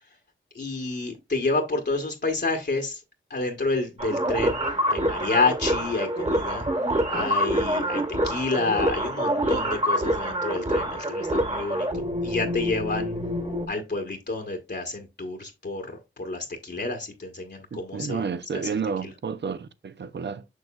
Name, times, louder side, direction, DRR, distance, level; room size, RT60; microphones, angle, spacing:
voice 1, 0.5-3.0 3.3-4.6 4.9-6.6 7.1-13.1 13.7-18.2 18.5-18.6 19.0-19.1, left 3 dB, 55° left, 1.2 m, -29 dB
sound 1, 4.0-13.7, right 1 dB, 30° right, 1.6 m, -26 dB
voice 2, 17.7-20.5, right 5 dB, 55° right, 0.6 m, -31 dB
6.5 x 6.2 x 2.4 m
cardioid pair, 55°, 21 cm